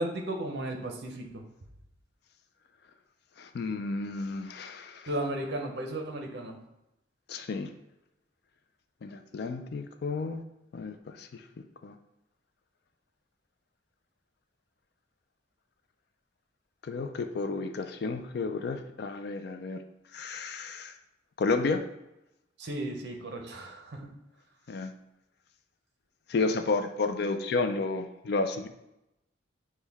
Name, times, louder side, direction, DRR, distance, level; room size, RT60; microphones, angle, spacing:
voice 1, 0.0-1.4 5.1-6.5 22.6-24.1, right 1 dB, 55° right, 3 dB, 0.7 m, -34 dB
voice 2, 3.4-5.1 7.3-7.7 9.0-10.4 10.7-11.3 11.8-11.9 16.9-19.8 20.1-20.9 21.4-21.8 24.7-24.9 26.3-28.7, left 3 dB, 55° left, 8 dB, 0.3 m, -31 dB
6.2 x 2.2 x 3.4 m, 0.90 s
head